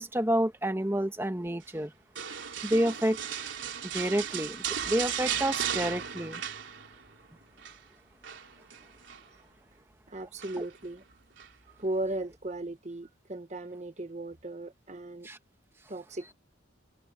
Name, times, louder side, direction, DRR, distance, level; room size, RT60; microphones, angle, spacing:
voice 1, 0.0-1.9 2.6-3.2 3.8-6.4 10.6-10.7 15.2-15.4, right 1 dB, 15° right, 1.7 m, -29 dB
sound 1, 2.2-7.2 7.4-7.8 8.2-9.3 10.4-10.9 11.4-11.5, right 8 dB, 75° right, 3.3 m, -36 dB
voice 2, 10.1-11.0 11.8-15.3 15.9-16.3, right 1 dB, 35° right, 1.3 m, -36 dB
head